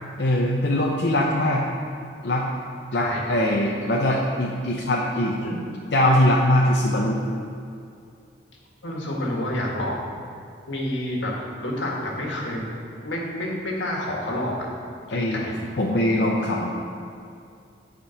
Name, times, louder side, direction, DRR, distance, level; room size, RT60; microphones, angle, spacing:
voice 1, 0.2-1.7 2.2-2.5 2.9-5.4 5.9-7.2 15.1-15.4 15.8-16.7, left 1 dB, 65° left, -3 dB, 0.7 m, -21 dB
voice 2, 2.9-3.2 5.4-5.6 8.8-10.1 10.7-12.6 13.0-14.7 15.1-15.6, left 1 dB, 90° left, -2 dB, 1.7 m, -29 dB
9.5 x 5.2 x 5.7 m, 2.4 s
head